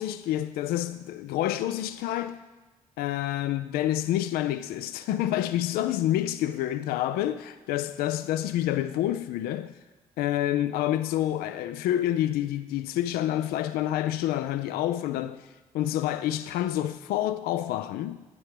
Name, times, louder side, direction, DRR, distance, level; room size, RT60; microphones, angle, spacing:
voice 1, 0.0-2.4 3.0-9.7 10.2-15.5 15.7-18.2, left 13 dB, 65° left, 0.4 m, -28 dB
9.5 x 8.5 x 3.4 m
hypercardioid pair, 40°, 17 cm